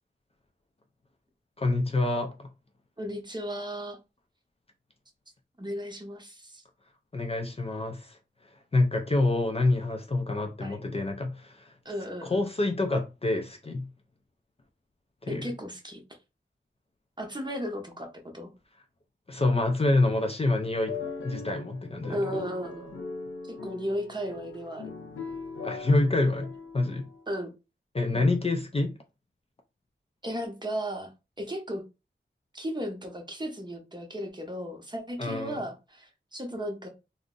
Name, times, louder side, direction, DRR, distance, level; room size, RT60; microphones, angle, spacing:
voice 1, 1.6-2.5 7.1-8.2 8.7-11.7 12.2-13.9 15.2-15.5 19.3-21.0 21.2-22.4 25.6-27.0 27.9-29.0 35.2-35.6, left 2 dB, 30° left, 0.4 m, -27 dB
voice 2, 3.0-4.0 5.6-6.6 10.6-10.8 11.8-12.4 15.3-16.0 17.2-18.5 22.1-22.9 23.5-24.9 27.3-27.5 28.1-28.4 30.2-31.1 31.4-31.8 32.5-36.9, equal, 20° right, 0.7 m, -35 dB
sound 1, 20.8-27.2, left 4 dB, 80° left, 0.5 m, -40 dB
2.5 x 2.0 x 3.7 m
wide cardioid pair, 80°, 20 cm